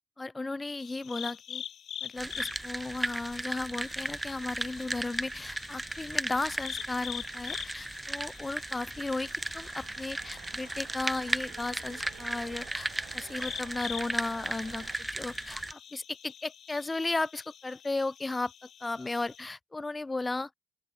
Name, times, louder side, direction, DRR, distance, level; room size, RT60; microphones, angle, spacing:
voice 1, 0.2-1.6 2.0-12.9 13.1-18.5 18.8-20.5, left 2 dB, 20° left, 0.8 m, -35 dB
sound 1, 0.8-19.5, left 9 dB, 60° left, 1.4 m, -46 dB
sound 2, 2.2-15.7, right 2 dB, 15° right, 1.5 m, -36 dB
sound 3, 7.2-15.0, right 23 dB, 75° right, 5.2 m, -54 dB
open air
hypercardioid pair, 45°, 0 cm